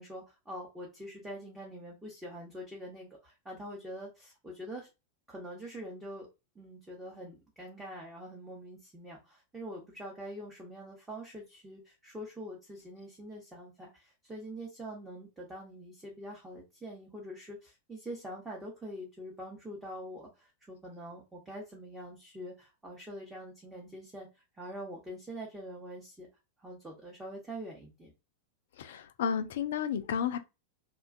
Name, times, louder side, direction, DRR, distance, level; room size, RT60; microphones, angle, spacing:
voice 1, 0.0-4.9 5.3-6.3 6.6-26.3 26.6-28.1, equal, 10° right, 0.8 m, -44 dB
voice 2, 28.8-30.4, left 7 dB, 55° left, 0.3 m, -32 dB
2.4 x 2.2 x 2.4 m
figure-of-eight pair, 90°, 0 cm